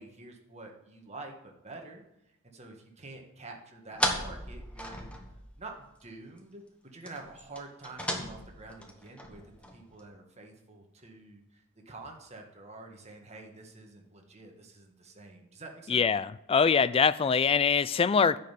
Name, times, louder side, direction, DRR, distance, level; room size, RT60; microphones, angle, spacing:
voice 1, 0.0-5.1 5.6-6.6 6.9-9.4 9.7-16.0, right 2 dB, 30° right, 1.7 m, -48 dB
sound 1, 3.9-5.7 6.0-6.1 6.4-6.5 7.0-10.0, left 1 dB, 5° left, 1.2 m, -36 dB
voice 2, 15.9-18.4, left 6 dB, 25° left, 0.3 m, -24 dB
10.0 x 5.5 x 8.3 m
head